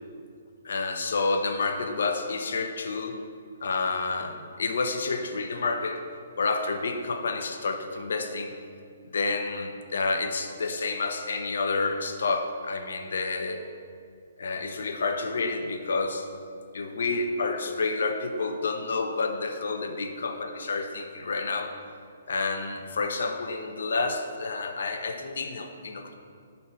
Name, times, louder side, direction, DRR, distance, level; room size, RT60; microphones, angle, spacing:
voice 1, 0.6-3.2 3.6-6.0 6.4-8.5 9.1-13.6 14.4-16.3 16.7-21.7 22.3-26.1, left 3 dB, 75° left, 6 dB, 0.8 m, -29 dB
9.3 x 4.2 x 4.3 m, 2.3 s
hypercardioid pair, 165°, 0 cm